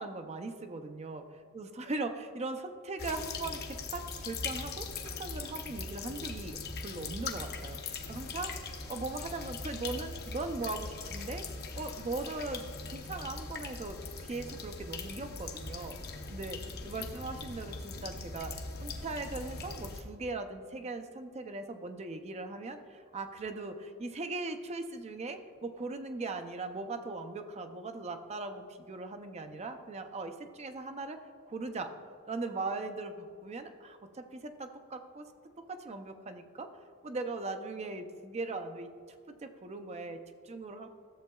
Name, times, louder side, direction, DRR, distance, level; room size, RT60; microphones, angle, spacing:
voice 1, 0.0-7.8 8.1-11.5 11.8-16.0 16.3-31.2 31.4-31.9 32.3-35.3 35.7-36.7 37.0-38.9 39.3-40.9, right 3 dB, 30° right, 7 dB, 0.5 m, -39 dB
sound 1, 3.0-20.0, left 4 dB, 45° left, 0.8 m, -41 dB
13.5 x 7.5 x 2.3 m, 2.1 s
head